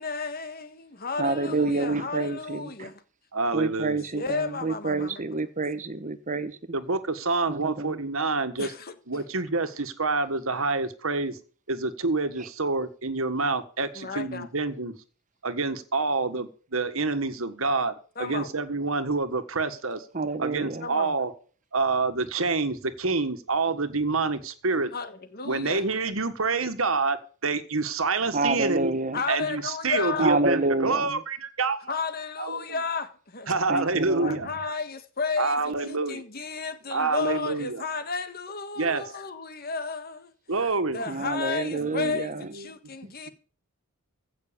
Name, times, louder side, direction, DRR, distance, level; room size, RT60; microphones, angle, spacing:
voice 1, 0.0-3.0 3.6-5.2 8.6-9.2 13.9-14.5 18.2-18.5 20.8-21.1 24.9-25.8 29.1-30.3 31.9-33.6 34.2-40.3 40.9-43.3, left 4 dB, 45° left, 1.6 m, -33 dB
voice 2, 1.2-2.9 3.5-6.6 7.5-8.0 20.1-20.9 28.3-29.2 30.2-31.2 33.7-34.4 41.1-42.4, right 3 dB, 35° right, 1.1 m, -28 dB
voice 3, 3.3-4.0 6.7-8.7 9.1-11.4 11.7-15.0 15.4-17.9 18.2-20.0 20.4-21.3 21.7-24.9 25.5-27.2 27.4-28.9 29.3-31.9 32.4-32.7 33.5-34.5 35.4-36.2 36.9-37.8 38.8-39.0 40.5-41.0 41.8-42.1 42.5-42.7 43.0-43.3, right 3 dB, 70° right, 1.6 m, -27 dB
16.0 x 6.5 x 6.9 m
head